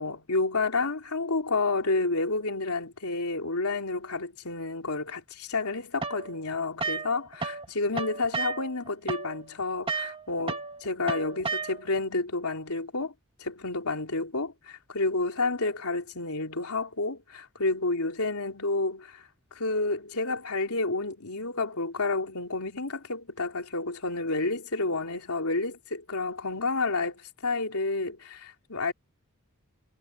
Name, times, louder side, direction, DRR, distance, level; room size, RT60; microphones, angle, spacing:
voice 1, 0.0-13.1 13.4-19.2 19.5-28.9, left 3 dB, 75° left, 3.6 m, -30 dB
sound 1, 6.0-7.7 7.9-12.0, right 4 dB, 25° right, 2.0 m, -33 dB
head